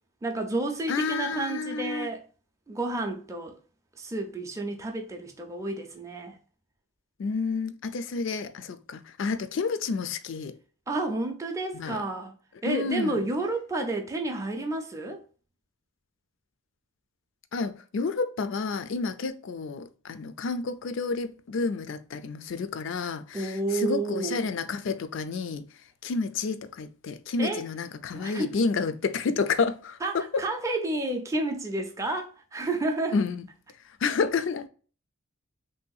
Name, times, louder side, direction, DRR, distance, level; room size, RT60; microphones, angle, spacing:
voice 1, 0.2-2.2 2.7-3.6 4.0-6.4 10.9-12.3 12.6-15.2 23.3-24.5 27.4-27.7 28.1-28.5 30.0-33.2, right 2 dB, 15° right, 0.4 m, -30 dB
voice 2, 0.9-2.1 7.2-10.5 11.7-12.0 12.6-13.2 17.5-25.6 26.0-30.0 30.3-30.4 33.1-33.5 34.0-34.7, left 4 dB, 60° left, 0.4 m, -30 dB
3.3 x 2.7 x 2.3 m
head